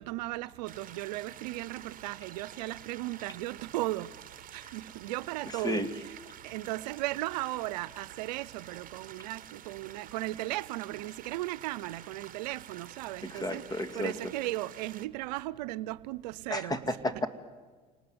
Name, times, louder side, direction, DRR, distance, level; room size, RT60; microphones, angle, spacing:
voice 1, 0.0-4.1 4.5-6.1 6.4-17.2, right 17 dB, 85° right, 0.7 m, -36 dB
sound 1, 0.7-15.1, right 10 dB, 45° right, 1.3 m, -49 dB
voice 2, 5.5-5.9 13.3-14.1 16.5-17.3, left 1 dB, 20° left, 2.2 m, -32 dB
27.0 x 19.0 x 9.6 m
supercardioid pair, 80°, 21 cm